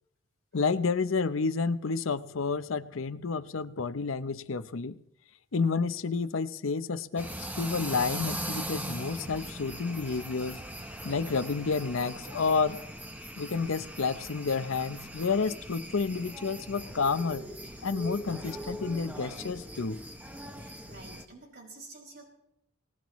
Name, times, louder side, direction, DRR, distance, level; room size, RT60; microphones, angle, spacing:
voice 1, 0.5-5.0 5.5-10.6 11.0-12.8 13.4-17.4 17.8-20.0, left 4 dB, 80° left, 13 dB, 0.7 m, -30 dB
sound 1, 7.2-21.3, right 1 dB, 10° right, 0.9 m, -40 dB
voice 2, 20.5-22.2, right 3 dB, 50° right, -1 dB, 5.7 m, -49 dB
23.0 x 19.0 x 3.1 m, 0.82 s
head